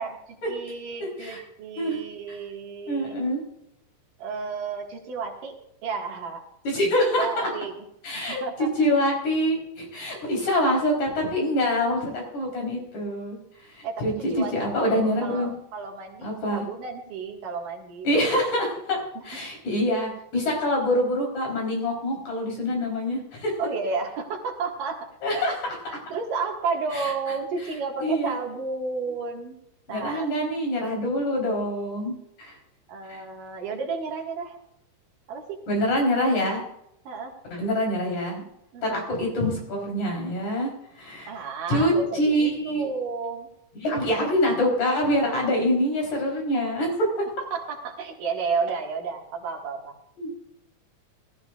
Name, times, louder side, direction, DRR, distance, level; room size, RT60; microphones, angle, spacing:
voice 1, 0.0-3.2 4.2-5.6 5.8-6.5 7.2-7.7 8.1-8.7 13.8-18.5 19.2-19.3 23.6-25.5 25.9-29.6 29.9-30.3 31.4-31.7 32.9-34.6 35.3-35.6 37.1-37.4 38.7-39.0 41.3-43.5 47.5-50.0, right 4 dB, 85° right, 0 dB, 3.5 m, -32 dB
voice 2, 1.0-1.4 1.8-2.0 2.9-3.4 6.6-7.5 8.0-8.4 8.8-13.4 13.8-15.5 16.2-16.7 18.0-19.0 19.2-23.5 25.2-25.7 26.9-27.1 28.0-28.3 29.9-32.5 33.1-33.2 35.7-36.6 37.5-38.4 38.8-40.7 41.0-41.3 41.7-42.9 43.8-47.2 50.2-50.3, equal, 60° left, -1 dB, 5.4 m, -25 dB
19.5 x 13.5 x 2.5 m, 0.79 s
omnidirectional pair, 3.7 m